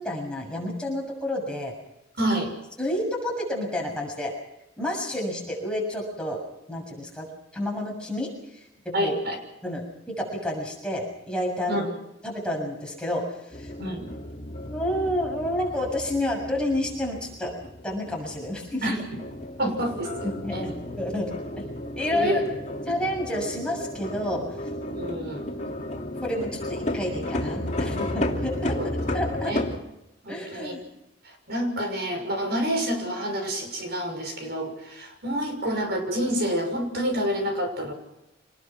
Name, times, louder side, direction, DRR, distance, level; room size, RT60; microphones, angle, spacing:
voice 1, 0.0-1.7 2.8-4.3 4.8-6.4 6.7-7.3 7.5-9.2 9.6-11.9 12.2-13.7 14.7-17.5 17.8-19.0 19.6-19.7 20.4-21.4 22.0-22.4 22.9-24.5 26.2-28.8 29.1-29.5 30.3-30.8, left 1 dB, 5° left, -2 dB, 6.8 m, -30 dB
voice 2, 2.2-2.5 8.9-9.4 11.7-11.8 13.8-14.0 18.8-19.0 19.6-20.9 22.1-22.4 24.9-25.4 28.8-28.9 29.5-29.6 30.2-30.7 31.2-37.9, equal, 55° right, 5 dB, 6.2 m, -28 dB
sound 1, 13.5-29.8, left 1 dB, 40° left, 2.9 m, -33 dB
26.0 x 20.0 x 6.1 m, 0.91 s
head